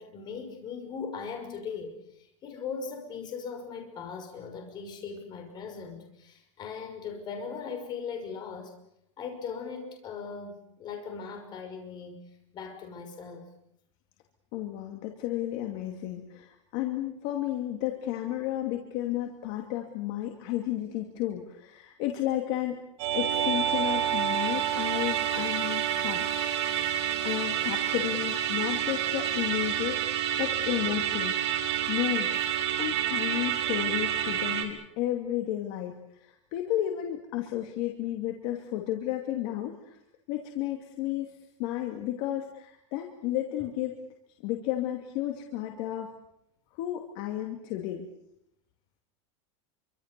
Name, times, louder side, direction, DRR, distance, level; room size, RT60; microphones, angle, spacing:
voice 1, 0.0-8.7 9.2-12.2 12.5-13.5, left 5 dB, 25° left, 5 dB, 5.9 m, -39 dB
voice 2, 14.5-22.8 23.1-26.2 26.7-27.0 27.2-32.5 32.8-40.0 40.3-44.0 44.4-46.1 46.7-48.1, left 13 dB, 45° left, 3 dB, 2.7 m, -32 dB
Musical instrument, 23.0-34.6, right 10 dB, 60° right, 5.2 m, -28 dB
27.5 x 25.0 x 6.9 m, 0.78 s
supercardioid pair, 160°, 16 cm